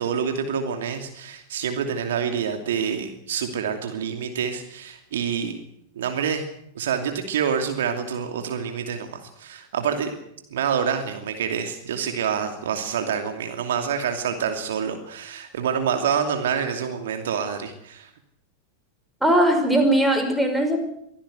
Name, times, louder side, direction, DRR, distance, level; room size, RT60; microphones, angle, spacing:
voice 1, 0.0-5.6 6.0-6.5 6.8-10.2 10.5-18.1, right 7 dB, 60° right, 5 dB, 2.7 m, -27 dB
voice 2, 19.2-20.8, right 1 dB, 5° right, 5 dB, 5.4 m, -19 dB
24.0 x 16.0 x 8.2 m, 0.75 s
figure-of-eight pair, 90°, 0 cm